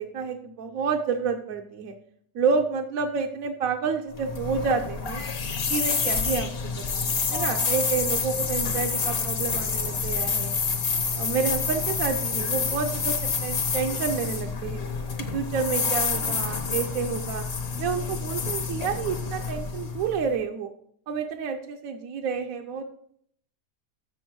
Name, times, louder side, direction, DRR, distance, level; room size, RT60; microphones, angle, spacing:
voice 1, 0.0-1.9 2.3-5.2 5.7-10.6 11.2-14.8 15.3-17.4 17.8-20.7 21.1-22.8, right 5 dB, 65° right, 3 dB, 1.0 m, -29 dB
sound 1, 4.1-20.3, left 5 dB, 40° left, 1.0 m, -28 dB
6.8 x 6.3 x 6.1 m, 0.63 s
omnidirectional pair, 1.8 m